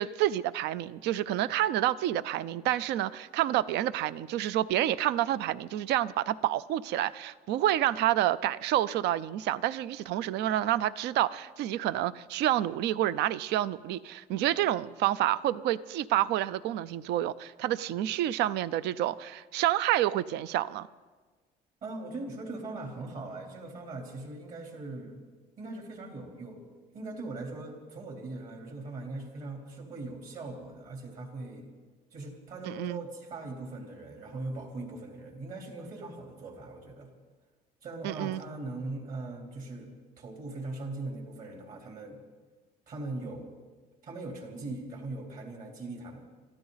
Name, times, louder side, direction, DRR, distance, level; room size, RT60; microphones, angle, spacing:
voice 1, 0.0-20.9 32.7-33.0 38.0-38.4, right 13 dB, 80° right, 17 dB, 0.5 m, -28 dB
voice 2, 21.8-25.2 25.6-26.6 26.9-31.7 32.1-37.1 37.8-42.2 42.9-43.6 44.0-46.2, right 2 dB, 55° right, 1 dB, 3.6 m, -40 dB
25.5 x 13.5 x 4.0 m, 1.4 s
cardioid pair, 110°, 17 cm